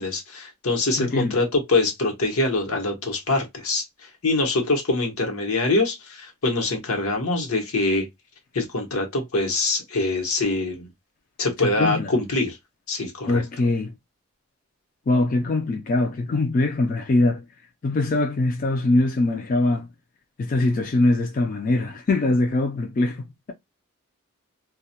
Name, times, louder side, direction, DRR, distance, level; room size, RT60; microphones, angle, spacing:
voice 1, 0.0-3.8 4.2-8.1 8.5-10.9 11.4-12.6 12.9-13.4, left 2 dB, 85° left, 0.9 m, -24 dB
voice 2, 1.0-1.3 11.6-12.1 13.3-13.9 15.1-17.5 17.8-19.9 20.4-23.5, left 2 dB, 40° left, 0.3 m, -22 dB
2.2 x 2.1 x 2.7 m
head